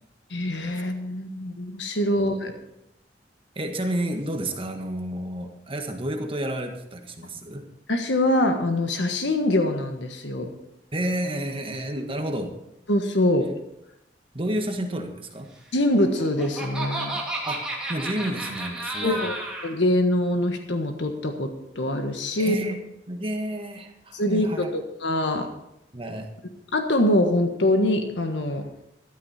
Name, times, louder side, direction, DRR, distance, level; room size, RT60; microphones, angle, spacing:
voice 1, 0.3-2.5 7.9-10.5 12.9-13.5 15.7-17.2 19.0-19.3 19.6-22.6 24.1-25.5 26.7-28.7, left 1 dB, 85° left, 5 dB, 1.5 m, -24 dB
voice 2, 3.5-7.7 10.9-12.5 14.3-15.5 17.5-17.6 17.9-19.2 22.4-22.8 23.1-24.7 25.9-26.3, right 1 dB, 30° right, 4 dB, 1.6 m, -30 dB
Laughter, 15.9-19.7, right 2 dB, 5° right, 2.7 m, -32 dB
14.0 x 12.5 x 4.3 m, 0.84 s
head